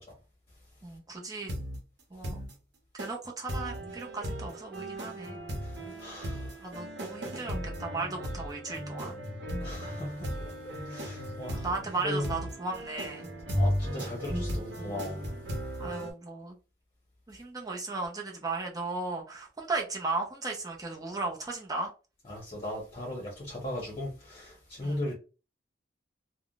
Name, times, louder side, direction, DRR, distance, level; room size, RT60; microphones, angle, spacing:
voice 1, 0.8-1.5 2.1-2.5 2.9-5.4 6.6-9.2 11.6-13.3 15.8-16.6 17.3-21.9 24.8-25.0, right 3 dB, 20° right, 0.7 m, -36 dB
sound 1, 1.5-1.8 2.2-2.5 3.0-3.1 3.5-16.1, equal, 70° right, 0.9 m, -36 dB
voice 2, 5.6-6.6 9.6-11.7 12.0-12.4 13.5-15.3 22.3-25.1, left 1 dB, 30° left, 1.0 m, -37 dB
3.5 x 2.2 x 2.4 m
head